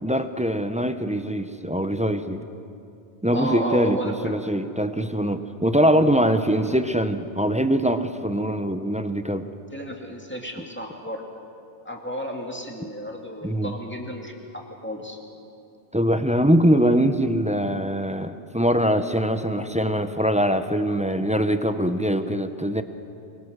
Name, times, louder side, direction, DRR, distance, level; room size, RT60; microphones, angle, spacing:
voice 1, 0.0-2.4 3.2-9.5 13.4-13.7 15.9-22.8, equal, 5° right, 9 dB, 0.7 m, -23 dB
voice 2, 3.3-4.3 6.5-6.8 9.7-11.2 11.8-15.2, equal, 10° left, 1 dB, 2.4 m, -33 dB
23.5 x 23.0 x 6.6 m, 2.6 s
omnidirectional pair, 1.2 m